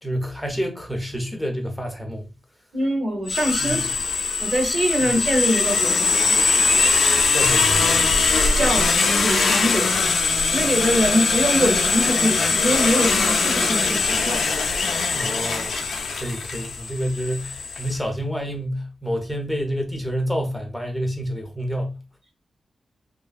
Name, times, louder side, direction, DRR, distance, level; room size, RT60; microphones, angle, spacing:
voice 1, 0.0-2.3 3.6-3.8 5.0-5.1 7.3-8.0 15.1-15.8 16.1-22.0, equal, 5° left, 0.4 m, -28 dB
voice 2, 2.7-3.9 4.4-6.2 8.6-8.9 9.2-10.0 10.5-14.4, equal, 45° right, 0.7 m, -23 dB
sound 1, 3.3-17.9, left 4 dB, 75° left, 0.4 m, -21 dB
2.5 x 2.3 x 2.3 m
wide cardioid pair, 140°, 0 cm